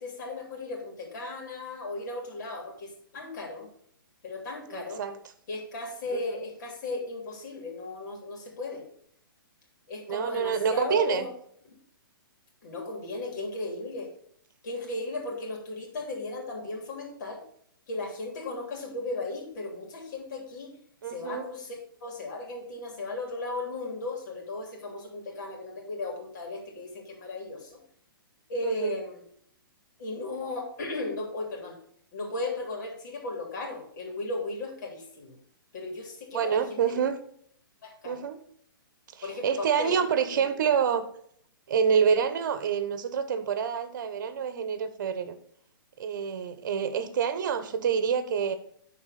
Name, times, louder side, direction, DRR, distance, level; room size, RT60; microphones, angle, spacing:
voice 1, 0.0-3.7 4.2-5.0 5.5-8.8 9.9-11.3 11.6-11.7 12.6-14.1 14.6-17.4 17.9-20.7 21.1-27.8 28.5-29.2 30.0-31.8 32.1-35.4 35.7-37.0 37.8-38.2 39.2-39.9 40.3-40.5, left 2 dB, 55° left, 1 dB, 2.9 m, -36 dB
voice 2, 4.7-5.2 6.1-6.4 10.1-11.3 21.0-21.5 28.6-28.9 36.3-37.2 38.0-38.4 39.1-41.0 41.7-45.3 46.0-48.6, right 7 dB, 55° right, 11 dB, 1.0 m, -27 dB
10.5 x 4.2 x 4.1 m, 0.65 s
hypercardioid pair, 140°, 12 cm